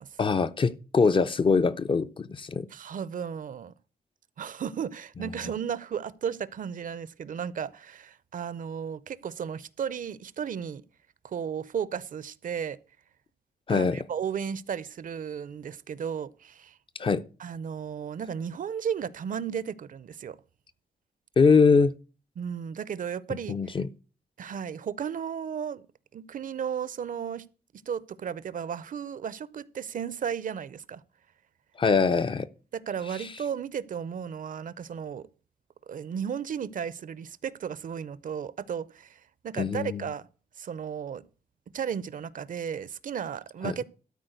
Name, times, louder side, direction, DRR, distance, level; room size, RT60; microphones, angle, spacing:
voice 1, 0.2-2.7 13.7-14.0 17.0-17.2 21.4-21.9 23.5-23.9 31.8-32.5 39.6-40.0 43.6-43.7, left 5 dB, 30° left, 0.4 m, -23 dB
voice 2, 2.7-3.7 4.4-10.8 11.2-12.8 13.7-16.8 17.4-20.4 22.4-23.8 24.4-25.8 26.1-27.4 27.9-31.0 32.7-35.3 35.9-40.3 40.6-41.2 41.7-43.8, right 7 dB, 55° right, 0.5 m, -34 dB
13.0 x 4.4 x 7.9 m
wide cardioid pair, 170°, 16 cm